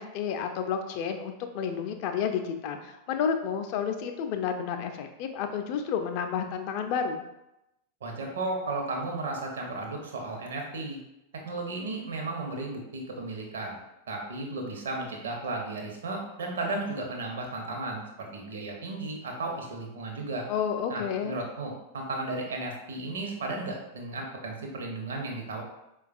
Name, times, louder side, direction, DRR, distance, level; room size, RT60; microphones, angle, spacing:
voice 1, 0.0-7.2 20.5-21.4, left 7 dB, 45° left, 6 dB, 0.4 m, -31 dB
voice 2, 8.0-11.0 11.4-13.8 14.1-20.5 20.9-25.6, right 2 dB, 65° right, 1 dB, 0.7 m, -34 dB
4.5 x 2.2 x 2.5 m, 0.90 s
figure-of-eight pair, 90°, 0 cm